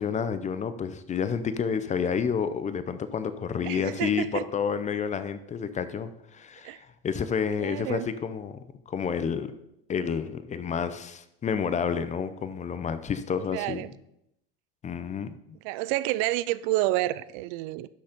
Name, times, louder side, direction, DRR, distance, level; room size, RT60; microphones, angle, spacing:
voice 1, 0.0-9.5 9.9-13.8 14.8-15.3, left 6 dB, 25° left, 0.6 m, -30 dB
voice 2, 3.6-4.4 6.6-6.8 7.6-8.1 13.5-13.9 15.6-17.9, right 17 dB, 60° right, 0.5 m, -29 dB
12.0 x 4.1 x 5.1 m
supercardioid pair, 115°, 31 cm